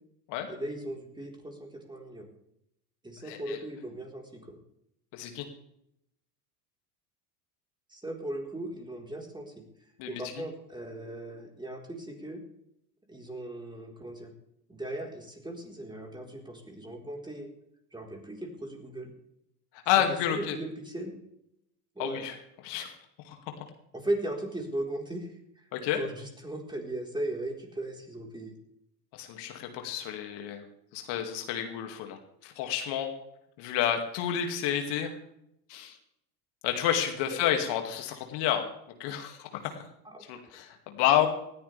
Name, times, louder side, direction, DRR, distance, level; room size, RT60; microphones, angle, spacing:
voice 1, 0.5-2.3 3.0-4.6 7.9-9.6 10.1-12.4 13.1-14.3 14.7-17.5 17.9-19.1 20.1-21.1 21.9-22.2 23.9-25.3 25.6-25.7 25.9-28.5 37.3-37.5 40.0-40.2, right 1 dB, 10° right, 1 dB, 4.4 m, -37 dB
voice 2, 3.2-3.6 5.1-5.5 10.0-10.2 19.9-20.6 22.0-22.3 22.6-23.0 23.2-23.4 25.7-26.0 29.1-30.6 30.9-33.1 33.6-35.1 35.7-36.0 36.6-38.6 39.0-39.8 40.3-41.3, left 10 dB, 60° left, 4 dB, 2.5 m, -30 dB
19.0 x 14.5 x 3.5 m, 0.78 s
hypercardioid pair, 85°, 47 cm